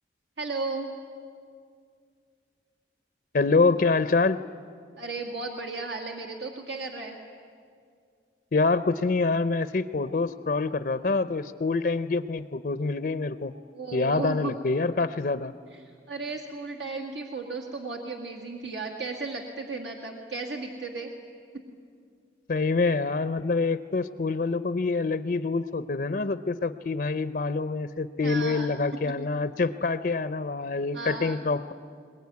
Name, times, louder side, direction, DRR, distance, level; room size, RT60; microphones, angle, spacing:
voice 1, 0.4-0.9 5.0-7.2 13.7-14.5 15.7-15.8 16.1-21.1 28.2-28.7 30.9-31.4, right 3 dB, 80° right, 2 dB, 2.0 m, -35 dB
voice 2, 3.3-4.4 8.5-13.5 13.9-15.5 22.5-31.7, left 3 dB, 50° left, 13 dB, 0.5 m, -26 dB
22.5 x 20.5 x 9.5 m, 2.2 s
head